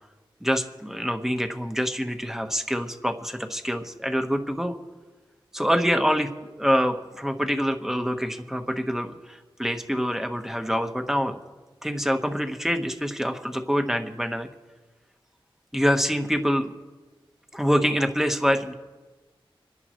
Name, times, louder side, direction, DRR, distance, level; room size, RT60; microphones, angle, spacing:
voice 1, 0.4-4.7 5.5-6.3 6.6-11.4 11.8-14.5 15.7-16.7 17.5-18.7, equal, 5° right, 6 dB, 1.3 m, -25 dB
27.5 x 11.0 x 3.2 m, 1.3 s
wide cardioid pair, 65°, 9 cm